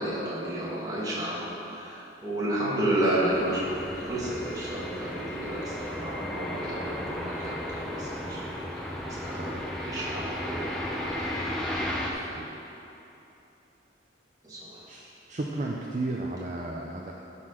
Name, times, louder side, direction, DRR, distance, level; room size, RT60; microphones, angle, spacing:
voice 1, 0.0-8.5 8.8-11.5 14.4-14.9, right 1 dB, 20° right, -7 dB, 1.9 m, -32 dB
sound 1, 3.3-12.1, left 1 dB, 5° left, 0.7 m, -34 dB
voice 2, 9.3-9.6 12.1-12.5 14.9-15.0 15.3-17.1, right 2 dB, 40° right, -2 dB, 0.5 m, -34 dB
12.0 x 4.3 x 5.8 m, 2.9 s
head